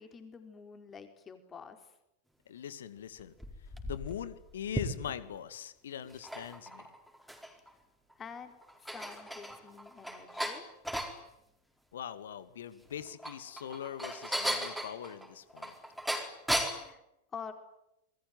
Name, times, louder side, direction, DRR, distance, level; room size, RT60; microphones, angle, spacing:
voice 1, 0.0-1.9 8.2-8.5 8.8-10.7 16.5-17.0 17.3-17.5, left 6 dB, 20° left, 7 dB, 4.3 m, -47 dB
voice 2, 2.5-3.3 3.8-6.9 11.9-15.7, left 9 dB, 65° left, 14 dB, 2.1 m, -42 dB
sound 1, 3.2-5.4 6.0-7.7 8.1-8.2 8.6-11.2 12.9-16.9, equal, ahead, 4.5 m, -37 dB
27.0 x 22.0 x 9.4 m, 0.86 s
figure-of-eight pair, 90°, 0 cm